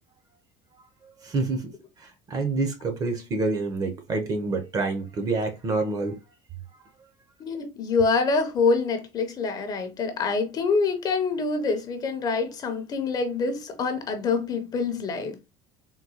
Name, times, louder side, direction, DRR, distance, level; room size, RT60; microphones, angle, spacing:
voice 1, 1.2-1.7 2.0-6.2, right 3 dB, 30° right, 0.6 m, -27 dB
voice 2, 7.4-15.4, left 4 dB, 30° left, 0.5 m, -26 dB
3.7 x 2.2 x 2.8 m
cardioid pair, 145°, 12 cm